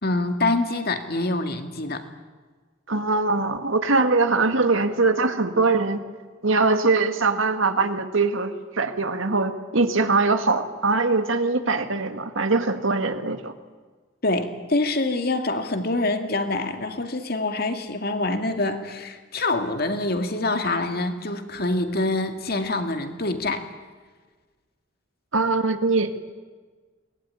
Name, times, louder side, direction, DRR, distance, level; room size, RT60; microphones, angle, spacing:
voice 1, 0.0-2.1 14.2-23.7, left 2 dB, 50° left, 7 dB, 2.3 m, -25 dB
voice 2, 2.9-6.0 6.4-13.5 25.3-26.1, right 3 dB, 85° right, 8 dB, 2.0 m, -22 dB
23.0 x 20.0 x 9.7 m, 1.4 s
head